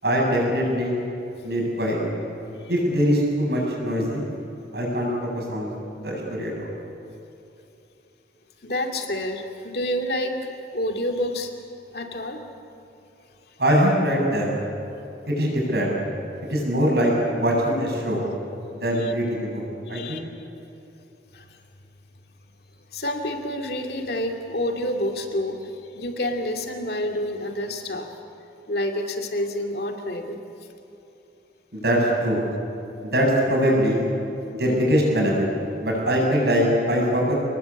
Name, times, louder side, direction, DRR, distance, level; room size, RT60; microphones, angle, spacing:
voice 1, 0.0-0.9 1.4-2.0 2.7-4.2 4.7-5.1 5.3-5.7 6.0-6.7 13.6-14.6 15.3-15.9 16.4-18.2 18.8-19.6 19.9-20.2 31.7-32.4 33.0-34.0 34.5-35.5 35.8-37.3, equal, 60° right, -1 dB, 7.7 m, -22 dB
voice 2, 8.6-11.5 11.9-12.4 19.0-19.1 19.9-20.2 21.3-21.6 22.9-28.1 28.7-30.5, left 1 dB, 60° left, 3 dB, 2.6 m, -28 dB
28.5 x 20.0 x 8.5 m, 2.9 s
head